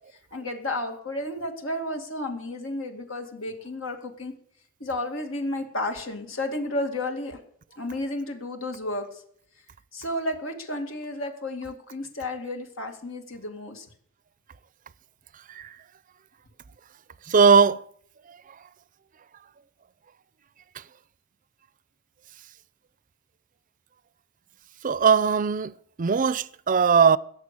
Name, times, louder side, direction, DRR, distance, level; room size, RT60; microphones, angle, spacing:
voice 1, 0.3-4.3 4.8-7.4 7.8-9.2 9.9-13.9, left 1 dB, 85° left, 2.4 m, -32 dB
voice 2, 17.3-17.8 18.3-18.4 24.8-27.2, right 6 dB, 40° right, 0.5 m, -20 dB
17.0 x 6.9 x 8.4 m
head